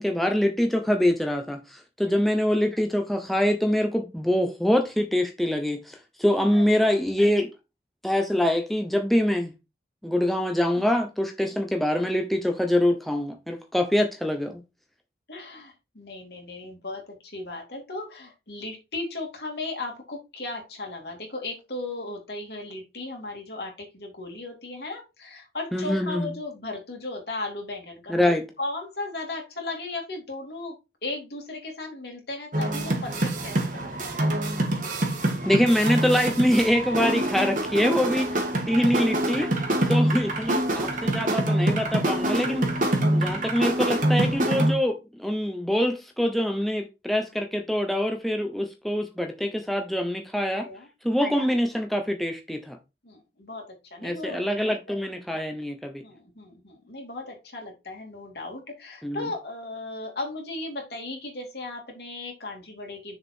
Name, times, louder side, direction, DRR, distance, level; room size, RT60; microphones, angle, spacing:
voice 1, 0.0-7.5 8.0-9.5 10.0-14.6 25.7-26.3 28.1-28.4 35.4-39.5 39.9-42.6 43.1-50.6 51.0-52.8 54.0-56.0 59.0-59.3, left 1 dB, ahead, 0.8 m, -24 dB
voice 2, 6.5-7.0 15.3-30.7 31.0-34.2 38.3-38.4 38.7-38.9 39.8-40.0 50.5-51.2 53.0-54.7 56.0-63.2, left 2 dB, 70° left, 2.9 m, -36 dB
sound 1, 32.5-44.7, right 1 dB, 45° right, 1.8 m, -25 dB
6.7 x 4.9 x 4.5 m
head